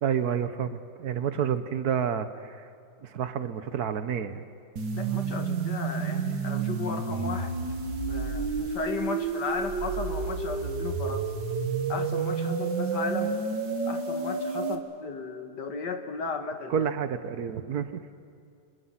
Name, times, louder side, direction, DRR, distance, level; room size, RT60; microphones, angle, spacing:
voice 1, 0.0-2.7 3.0-4.4 16.7-18.0, right 8 dB, 65° right, 11 dB, 1.4 m, -29 dB
sound 1, 4.8-14.8, right 5 dB, 90° right, 2.3 m, -30 dB
voice 2, 4.9-7.5 8.1-11.3 11.9-13.4 13.9-16.9, left 5 dB, 75° left, 6 dB, 2.2 m, -35 dB
29.5 x 26.0 x 5.8 m, 2.5 s
omnidirectional pair, 1.9 m